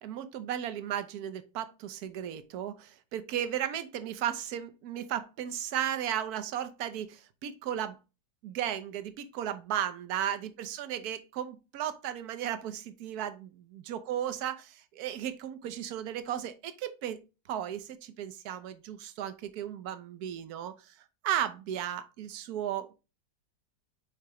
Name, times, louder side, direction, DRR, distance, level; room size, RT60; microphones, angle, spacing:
voice 1, 0.0-8.0 8.4-17.2 17.5-22.9, right 10 dB, 65° right, 1.2 m, -35 dB
6.7 x 4.8 x 3.1 m
omnidirectional pair, 1.9 m